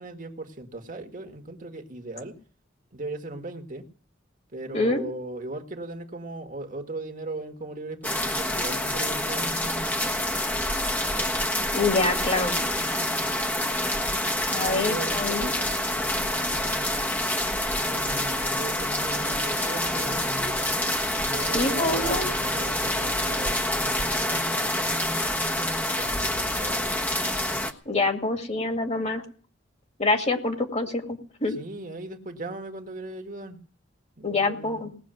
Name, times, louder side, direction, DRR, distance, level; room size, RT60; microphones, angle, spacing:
voice 1, 0.0-2.4 2.9-3.9 4.5-10.1 14.9-15.7 16.2-17.0 17.8-20.6 21.1-24.9 25.9-26.9 31.6-33.6 34.2-34.8, right 2 dB, 45° right, 1.9 m, -38 dB
voice 2, 4.7-5.0 11.7-12.6 14.5-15.5 21.4-22.3 27.9-29.2 30.0-31.6 34.2-34.9, left 2 dB, 35° left, 2.2 m, -26 dB
sound 1, 8.0-27.7, left 1 dB, 10° left, 1.2 m, -27 dB
19.0 x 7.0 x 9.2 m
head